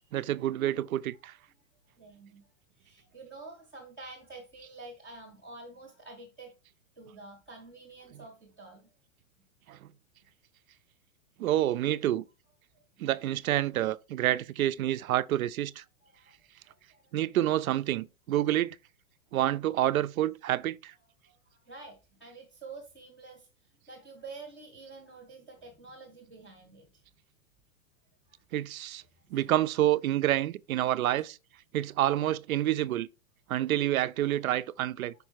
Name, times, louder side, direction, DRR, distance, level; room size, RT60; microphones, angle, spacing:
voice 1, 0.1-1.4 9.7-9.8 11.4-12.2 13.0-15.8 17.1-18.8 19.3-20.9 28.5-29.0 29.3-31.4 31.7-33.1 33.5-35.1, right 13 dB, 70° right, 0.5 m, -28 dB
voice 2, 1.9-2.5 2.8-6.5 7.0-8.9 12.7-12.8 16.0-16.3 16.6-17.2 21.2-23.5 23.9-27.0 28.3-28.4, right 3 dB, 5° left, 0.5 m, -48 dB
5.3 x 4.7 x 4.5 m
hypercardioid pair, 175°, 43 cm